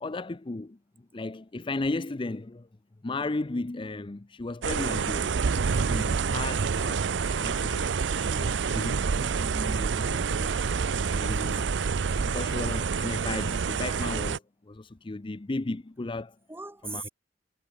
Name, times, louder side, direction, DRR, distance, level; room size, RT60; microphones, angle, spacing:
voice 1, 0.0-0.8 1.1-2.7 3.0-5.3 5.8-9.0 9.8-10.6 11.1-11.7 12.2-16.4 16.8-17.1, left 2 dB, 30° left, 0.6 m, -35 dB
sound 1, 4.6-14.4, right 5 dB, 75° right, 0.6 m, -27 dB
voice 2, 9.0-10.6 11.2-11.8 16.5-17.1, right 2 dB, 15° right, 2.9 m, -42 dB
head